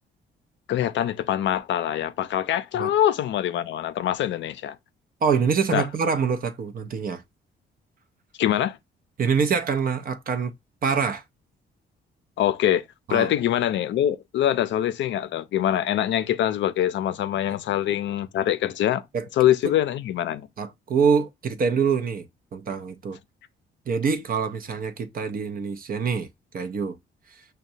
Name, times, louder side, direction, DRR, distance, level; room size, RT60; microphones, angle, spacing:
voice 1, 0.7-4.8 5.7-5.8 8.4-8.8 12.4-12.8 13.1-19.0 19.4-20.5, left 11 dB, 65° left, 0.5 m, -24 dB
voice 2, 5.2-7.2 9.2-10.5 10.8-11.2 13.1-13.3 17.5-17.6 19.1-19.2 20.6-23.2 23.9-26.3 26.5-27.0, right 6 dB, 45° right, 0.6 m, -25 dB
6.0 x 2.2 x 2.7 m
cardioid pair, 90°, 20 cm